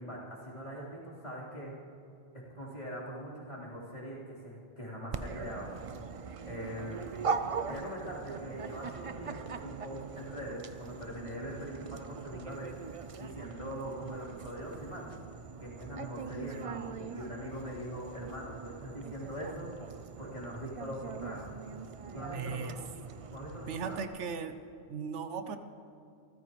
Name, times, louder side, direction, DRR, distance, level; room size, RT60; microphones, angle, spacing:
voice 1, 0.0-1.7 2.5-5.7 6.4-7.2 7.7-15.2 15.6-21.5 22.1-22.7 23.3-24.1, equal, 35° left, -8 dB, 3.8 m, -42 dB
Dog, 5.1-24.0, right 5 dB, 45° right, 0.4 m, -41 dB
voice 2, 22.3-22.8 23.7-24.6 24.9-25.6, right 6 dB, 80° right, 9 dB, 1.1 m, -37 dB
27.0 x 14.0 x 3.1 m, 2.6 s
omnidirectional pair, 1.2 m